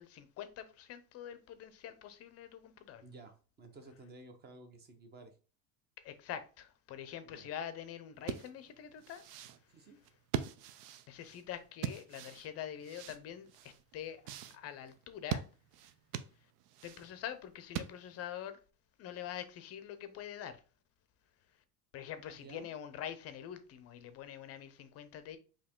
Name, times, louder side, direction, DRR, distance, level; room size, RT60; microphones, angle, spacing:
voice 1, 0.0-3.0 6.0-9.2 11.1-14.2 14.5-15.4 16.8-18.6 19.0-20.6 21.9-25.4, left 10 dB, 35° left, 0.5 m, -45 dB
voice 2, 3.0-5.4 7.2-7.5 9.7-10.0 22.3-22.7, right 2 dB, 20° right, 0.7 m, -54 dB
sound 1, 8.2-18.3, right 9 dB, 85° right, 0.7 m, -42 dB
4.7 x 2.9 x 3.6 m
cardioid pair, 145°, 47 cm